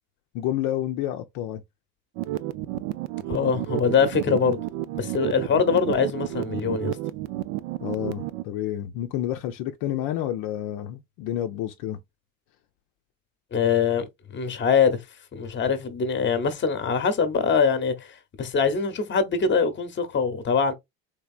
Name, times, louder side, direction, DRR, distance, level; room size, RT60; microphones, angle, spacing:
voice 1, 0.3-1.6 7.8-12.0, left 12 dB, 60° left, 0.6 m, -29 dB
sound 1, 2.1-8.4, right 15 dB, 60° right, 0.5 m, -31 dB
voice 2, 3.3-4.6 4.9-7.0 13.5-15.0 15.3-20.7, left 6 dB, 25° left, 1.0 m, -23 dB
3.6 x 3.3 x 2.4 m
hypercardioid pair, 85°, 42 cm